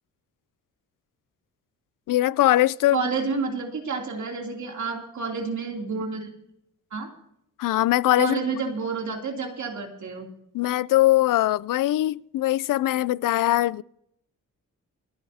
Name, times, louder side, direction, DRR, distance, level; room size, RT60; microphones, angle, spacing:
voice 1, 2.1-3.0 7.6-8.4 10.5-13.8, left 15 dB, 85° left, 0.5 m, -21 dB
voice 2, 2.9-6.3 6.9-7.1 8.2-10.3, right 4 dB, 65° right, 3.0 m, -29 dB
29.0 x 10.5 x 2.8 m
wide cardioid pair, 125°, 31 cm